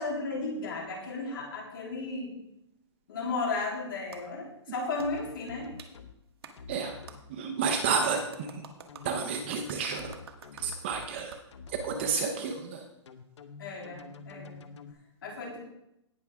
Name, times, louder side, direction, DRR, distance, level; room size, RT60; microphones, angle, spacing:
voice 1, 0.0-2.3 3.1-5.8 13.6-14.6 15.2-15.6, left 3 dB, 50° left, -1 dB, 3.4 m, -34 dB
Clapping, 4.1-4.2 5.0-5.1 5.8-5.9 6.4-6.5 7.1-7.2 7.7-11.4, right 6 dB, 55° right, 1.4 m, -48 dB
sound 1, 5.0-6.1 6.6-7.2 8.1-11.1 11.5-12.2 13.1-14.9, left 5 dB, 70° left, 1.0 m, -47 dB
voice 2, 7.3-8.7 9.0-10.1 10.6-11.4 11.7-12.9, right 5 dB, 25° right, 4 dB, 0.7 m, -31 dB
18.0 x 6.2 x 3.6 m, 0.83 s
hypercardioid pair, 175°, 15 cm